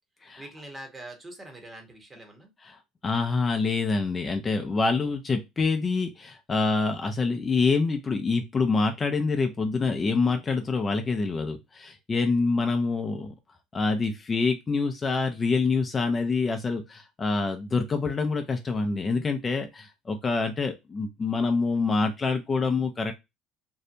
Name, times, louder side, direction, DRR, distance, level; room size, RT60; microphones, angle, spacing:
voice 1, 0.4-2.5, right 1 dB, 25° right, 4 dB, 1.0 m, -43 dB
voice 2, 3.0-13.3 13.7-23.1, left 4 dB, 30° left, 5 dB, 0.4 m, -26 dB
2.7 x 2.1 x 2.5 m, 0.22 s
supercardioid pair, 80°, 0 cm